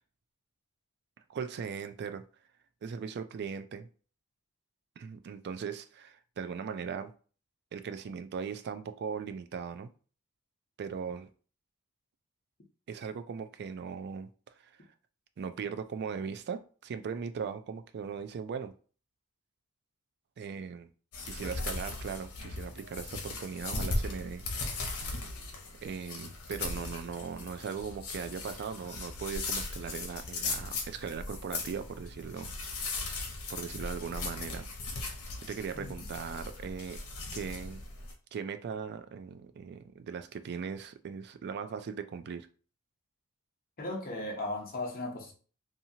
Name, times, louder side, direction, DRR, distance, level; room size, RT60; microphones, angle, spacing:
voice 1, 1.3-2.2 2.8-3.9 5.0-7.1 7.7-9.9 10.8-11.3 12.9-14.3 14.6-14.7 15.4-18.7 20.4-20.9 21.2-25.1 25.8-32.9 33.5-34.7 35.4-37.0 37.3-37.8 38.3-42.5, right 6 dB, 50° right, 0.3 m, -39 dB
sound 1, 21.1-38.1, left 3 dB, 85° left, 0.7 m, -38 dB
voice 2, 43.8-45.3, left 2 dB, 40° left, 0.8 m, -36 dB
2.8 x 2.3 x 2.7 m
head